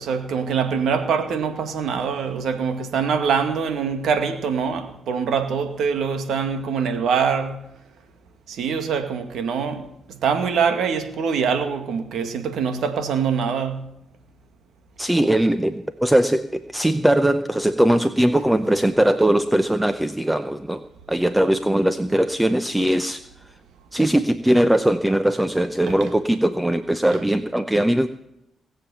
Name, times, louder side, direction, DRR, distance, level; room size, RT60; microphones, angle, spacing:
voice 1, 0.0-7.6 8.5-13.9 25.9-26.0, right 6 dB, 75° right, 2.1 m, -24 dB
voice 2, 15.0-20.8 21.1-23.2 23.9-28.1, right 1 dB, 10° right, 0.8 m, -20 dB
19.0 x 7.4 x 7.1 m
cardioid pair, 80°, 0 cm